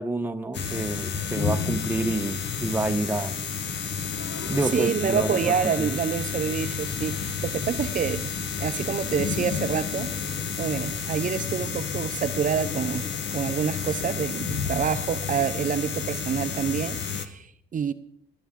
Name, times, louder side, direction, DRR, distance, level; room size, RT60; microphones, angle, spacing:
voice 1, 0.0-3.3 4.5-5.4 5.8-5.9, right 2 dB, 10° right, 0.8 m, -28 dB
sound 1, 0.5-17.2, left 6 dB, 60° left, 1.1 m, -30 dB
voice 2, 4.6-17.9, right 7 dB, 40° right, 0.6 m, -28 dB
19.5 x 10.5 x 3.7 m
cardioid pair, 90°, 20 cm